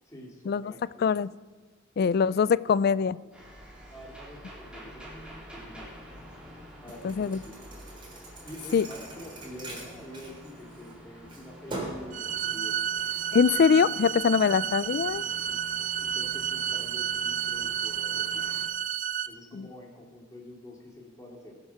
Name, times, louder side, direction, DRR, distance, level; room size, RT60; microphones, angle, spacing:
voice 1, 0.0-1.2 2.0-2.4 2.7-3.0 3.9-5.9 6.8-7.6 8.4-12.8 14.9-15.6 16.1-18.4 19.3-21.6, equal, 15° left, -2 dB, 2.3 m, -47 dB
voice 2, 2.0-3.2 7.0-7.4 8.7-8.9 13.3-15.2 19.5-19.7, left 6 dB, 55° left, 20 dB, 0.3 m, -23 dB
sound 1, 3.3-18.7, equal, 5° right, 2.9 m, -48 dB
Thump thud, 6.9-10.9 11.3-12.1, right 2 dB, 25° right, 3.6 m, -41 dB
sound 2, 12.1-19.3, right 9 dB, 40° right, 0.5 m, -31 dB
21.5 x 7.7 x 5.8 m, 1.3 s
head